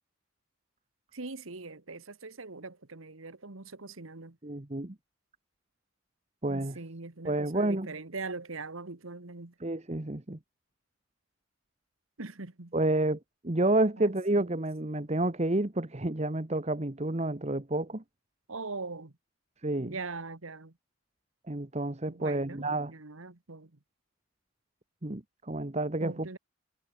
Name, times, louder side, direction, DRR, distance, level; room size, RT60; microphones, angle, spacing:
voice 1, 1.1-4.4 6.5-9.5 12.2-12.7 14.0-14.5 18.5-19.1 19.8-20.7 22.1-23.7 26.0-26.4, right 3 dB, 80° right, 1.6 m, -41 dB
voice 2, 4.4-4.9 6.4-6.8 7.2-7.9 9.6-10.4 12.7-13.2 13.4-18.0 19.6-20.0 21.5-22.9 25.0-26.4, right 2 dB, 30° right, 1.1 m, -29 dB
head